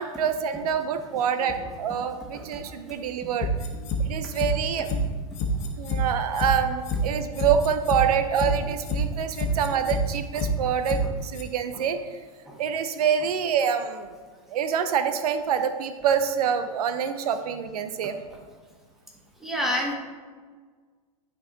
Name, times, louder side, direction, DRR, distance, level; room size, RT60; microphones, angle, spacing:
voice 1, 0.0-3.5 4.0-5.0 5.8-12.2 12.6-14.1 14.5-18.2, right 7 dB, 80° right, 9 dB, 0.7 m, -26 dB
voice 2, 2.3-3.3 4.1-4.2 5.4-5.7 9.5-9.6 10.3-10.5 11.7-11.8 12.5-12.6 18.3-18.4 19.4-19.9, left 1 dB, ahead, -2 dB, 1.6 m, -33 dB
sound 1, 3.4-4.0 4.4-4.5 4.9-5.0 5.4-6.0 6.4-6.5 6.9-7.0 7.4-8.0 8.4-8.5 8.9-9.0 9.4-10.0 10.4-10.5 10.9-11.0 11.4-11.5, left 4 dB, 40° left, 1.3 m, -28 dB
11.5 x 4.6 x 4.0 m, 1.5 s
hypercardioid pair, 130°, 19 cm